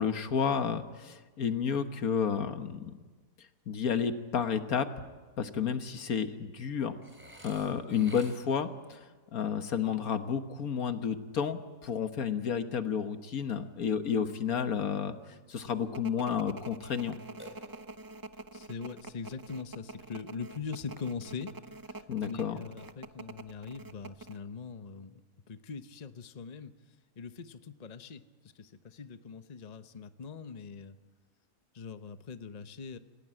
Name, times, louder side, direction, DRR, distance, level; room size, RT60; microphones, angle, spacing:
voice 1, 0.0-2.9 3.7-4.9 5.4-7.0 7.4-15.2 15.5-17.2 22.1-22.6, left 7 dB, 80° left, 8 dB, 1.7 m, -31 dB
Burping eructation, 7.0-8.7 17.4-18.2, equal, 10° right, 3.4 m, -51 dB
sound 1, 15.9-24.4, right 2 dB, 25° right, 0.5 m, -46 dB
voice 2, 18.5-21.5 21.9-25.2 25.5-26.7 27.2-28.2 28.5-31.0 31.7-33.0, left 5 dB, 35° left, 10 dB, 0.9 m, -42 dB
28.0 x 17.0 x 9.0 m, 1.3 s
omnidirectional pair, 1.5 m